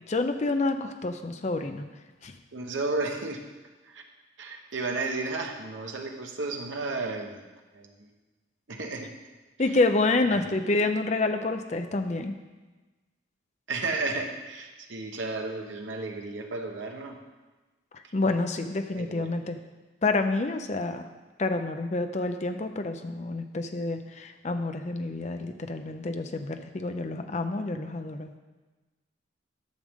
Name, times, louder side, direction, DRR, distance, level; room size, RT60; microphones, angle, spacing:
voice 1, 0.1-1.8 2.2-2.3 9.6-12.3 17.9-19.6 20.0-21.0 21.4-28.3, left 2 dB, 35° left, 7 dB, 0.5 m, -28 dB
voice 2, 2.5-3.4 3.9-4.0 4.4-7.4 7.7-8.1 8.7-9.1 10.3-10.4 13.7-17.2 19.0-19.3, right 3 dB, 75° right, 3 dB, 1.1 m, -33 dB
11.5 x 6.4 x 3.6 m, 1.2 s
head